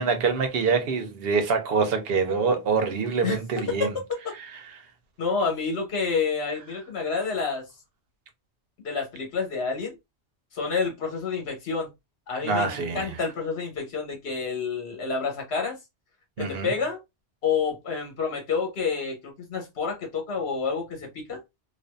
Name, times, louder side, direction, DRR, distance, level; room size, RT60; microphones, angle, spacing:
voice 1, 0.0-3.9 12.4-13.2 16.4-16.7, right 5 dB, 70° right, 0.8 m, -25 dB
voice 2, 5.2-7.6 8.8-10.0 10.5-11.9 12.3-15.8 16.4-17.0 17.4-21.4, left 5 dB, 75° left, 1.2 m, -29 dB
2.5 x 2.3 x 2.2 m
omnidirectional pair, 1.1 m